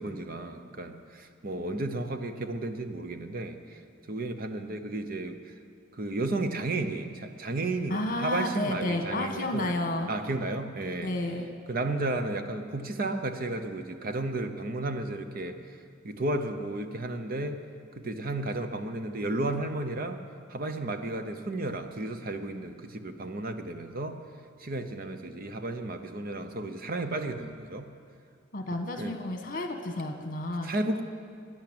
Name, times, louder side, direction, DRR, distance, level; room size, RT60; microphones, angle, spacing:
voice 1, 0.0-3.8 4.1-5.5 5.9-9.7 10.1-11.1 11.7-15.6 16.0-17.6 18.0-20.2 20.5-24.2 24.6-27.9 29.0-29.2 30.6-31.0, right 2 dB, 50° right, 8 dB, 0.8 m, -33 dB
voice 2, 7.9-10.1 11.0-11.5 28.5-30.7, left 1 dB, 45° left, 5 dB, 1.4 m, -31 dB
12.0 x 10.5 x 8.8 m, 2.3 s
head